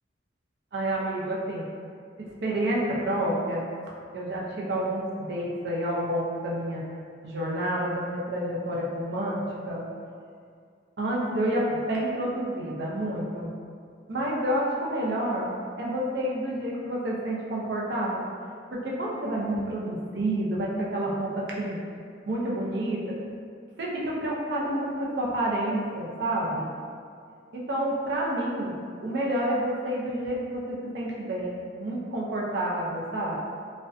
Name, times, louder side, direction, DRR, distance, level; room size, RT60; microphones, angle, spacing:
voice 1, 0.7-1.6 2.2-3.7 4.1-6.8 7.2-9.9 11.0-13.5 14.1-15.5 15.8-18.3 18.7-21.8 22.3-23.2 23.8-26.7 27.5-33.4, right 1 dB, 60° right, -4 dB, 0.5 m, -29 dB
2.5 x 2.1 x 2.4 m, 2.2 s
head